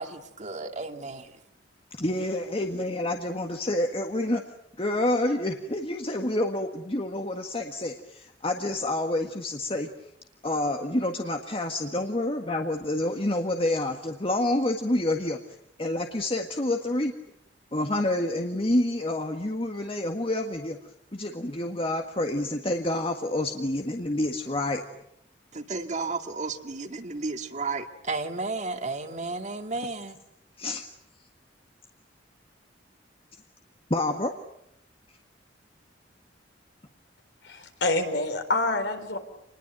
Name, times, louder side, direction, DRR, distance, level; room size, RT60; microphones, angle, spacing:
voice 1, 0.0-1.3 25.5-30.2, right 3 dB, 40° right, 6 dB, 2.2 m, -33 dB
voice 2, 2.0-4.4 4.8-9.9 10.4-15.4 15.8-17.1 17.7-20.8 21.1-24.8 30.6-30.8 33.9-34.3, left 1 dB, 30° left, 4 dB, 1.7 m, -28 dB
voice 3, 37.4-39.2, left 2 dB, 70° left, 7 dB, 4.1 m, -27 dB
28.0 x 21.0 x 9.1 m, 0.79 s
head